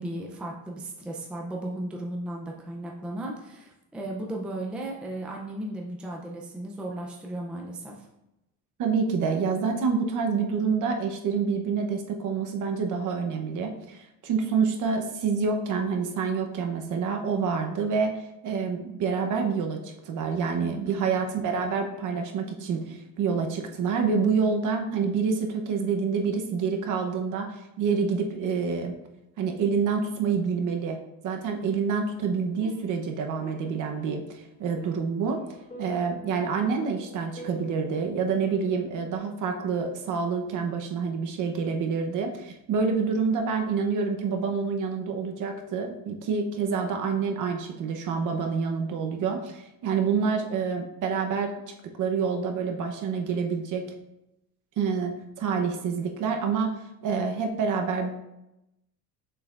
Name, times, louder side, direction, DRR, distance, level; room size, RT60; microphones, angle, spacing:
voice 1, 0.0-8.1 20.6-21.1, right 1 dB, 5° right, -1 dB, 0.4 m, -35 dB
voice 2, 8.8-18.2 18.4-27.5 27.8-28.9 29.4-31.0 31.2-35.4 35.8-51.5 52.0-53.8 54.8-55.1 55.4-56.7 57.0-58.2, right 5 dB, 50° right, 4 dB, 0.9 m, -27 dB
sound 1, 32.2-39.1, left 1 dB, 15° left, 1.4 m, -47 dB
6.9 x 5.5 x 2.5 m, 0.89 s
cardioid pair, 160°, 39 cm